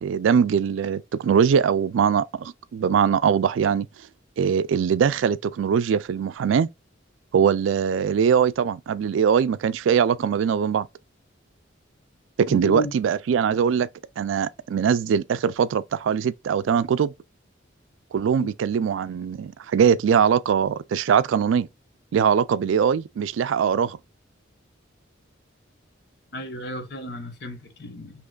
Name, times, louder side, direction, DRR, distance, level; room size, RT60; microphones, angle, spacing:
voice 1, 0.0-3.9 4.4-6.7 7.3-10.9 12.4-13.9 14.2-17.1 18.1-21.7 22.1-24.0, right 7 dB, 80° right, 0.3 m, -21 dB
voice 2, 12.5-12.9 18.4-18.5 26.3-28.1, equal, 60° left, 1.0 m, -33 dB
6.2 x 2.9 x 2.3 m
head